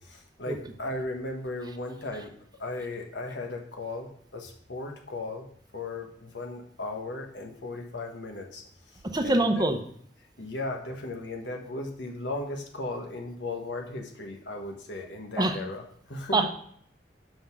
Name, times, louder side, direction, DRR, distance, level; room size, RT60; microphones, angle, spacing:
voice 1, 0.0-2.3 2.6-5.5 5.7-9.6 10.4-16.5, left 2 dB, 90° left, 2 dB, 1.3 m, -36 dB
voice 2, 9.1-9.8 15.4-15.6 16.3-16.5, right 2 dB, 25° right, 6 dB, 0.7 m, -24 dB
5.8 x 5.2 x 6.0 m, 0.63 s
head